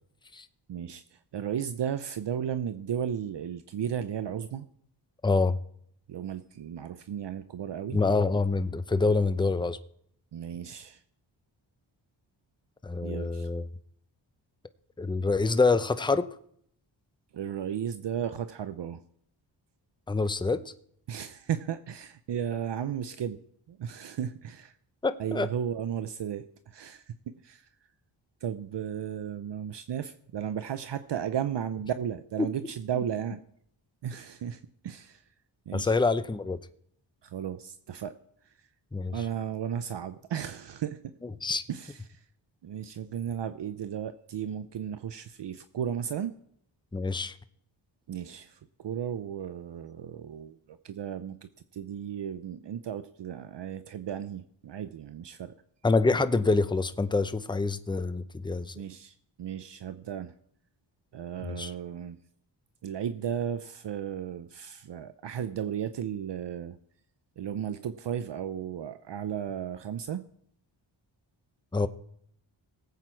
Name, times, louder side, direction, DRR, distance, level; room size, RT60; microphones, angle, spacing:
voice 1, 0.7-4.7 6.1-8.0 10.3-11.0 13.0-13.5 17.3-19.0 21.1-23.4 23.7-24.7 25.2-27.7 28.4-33.4 34.0-35.2 35.7-35.9 37.2-38.1 39.1-41.0 41.7-42.2 42.6-46.3 48.1-55.5 58.7-60.3 61.1-62.2 62.8-66.8 67.4-70.2, right 9 dB, 60° right, 12 dB, 0.7 m, -35 dB
voice 2, 5.2-5.6 7.9-9.8 12.8-13.7 15.0-16.3 20.1-20.7 25.0-25.5 35.7-36.6 38.9-39.1 41.4-41.6 46.9-47.3 55.8-58.7 61.4-61.7 71.7-71.9, left 3 dB, 10° left, 12 dB, 0.6 m, -26 dB
18.5 x 8.2 x 4.5 m, 0.67 s
cardioid pair, 60°, 47 cm